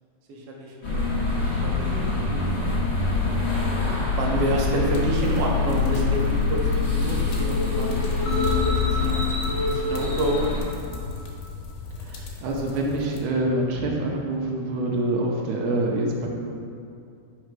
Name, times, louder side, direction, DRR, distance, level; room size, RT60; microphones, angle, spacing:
voice 1, 0.3-1.0 1.4-2.0 2.3-2.5 4.2-8.1 8.5-10.4, right 1 dB, 65° right, -2 dB, 1.8 m, -29 dB
sound 1, 0.8-10.6, left 3 dB, 35° left, 1.0 m, -25 dB
sound 2, 4.9-13.2, left 4 dB, 90° left, 2.3 m, -36 dB
sound 3, 8.3-11.3, left 5 dB, 65° left, 2.4 m, -29 dB
voice 2, 12.1-16.3, right 1 dB, 90° right, -1 dB, 2.3 m, -26 dB
6.6 x 4.9 x 4.6 m, 2.4 s
omnidirectional pair, 3.5 m